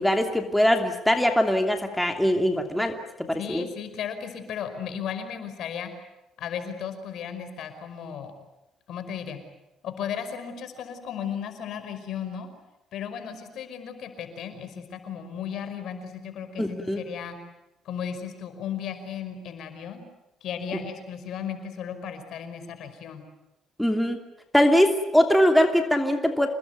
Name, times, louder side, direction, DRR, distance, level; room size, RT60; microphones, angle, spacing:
voice 1, 0.0-3.6 16.6-17.0 23.8-24.2 24.5-26.5, equal, 5° left, 4 dB, 2.9 m, -22 dB
voice 2, 3.4-5.9 6.4-8.3 8.9-9.4 9.8-12.5 12.9-17.4 17.9-20.0 20.4-23.2, left 8 dB, 70° left, 8 dB, 5.2 m, -35 dB
28.5 x 20.0 x 9.4 m, 0.92 s
cardioid pair, 95°, 0 cm